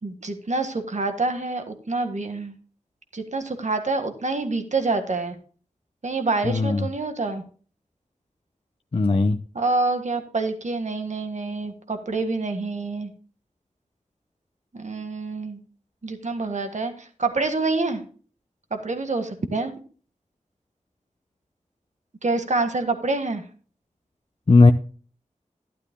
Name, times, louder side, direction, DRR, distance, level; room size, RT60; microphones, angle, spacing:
voice 1, 0.0-2.5 3.1-5.4 6.0-7.4 9.5-13.1 14.7-15.6 16.0-18.0 18.7-19.7 22.2-23.4, right 3 dB, 70° right, 6 dB, 1.7 m, -27 dB
voice 2, 6.4-6.9 8.9-9.4 24.5-24.7, left 3 dB, 45° left, 6 dB, 0.7 m, -16 dB
12.5 x 12.0 x 2.2 m, 0.40 s
wide cardioid pair, 60°, 13 cm